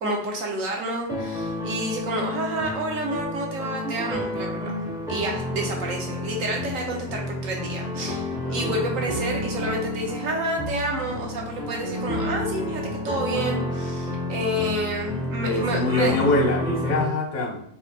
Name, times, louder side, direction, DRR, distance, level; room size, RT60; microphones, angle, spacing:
voice 1, 0.0-4.7 5.1-16.3, right 1 dB, 60° right, 0 dB, 1.2 m, -29 dB
sound 1, 1.1-17.1, left 1 dB, 5° right, 0.3 m, -30 dB
voice 2, 8.3-8.8 15.4-17.6, left 2 dB, 40° left, 1 dB, 0.6 m, -24 dB
4.3 x 2.1 x 4.1 m, 0.68 s
omnidirectional pair, 1.7 m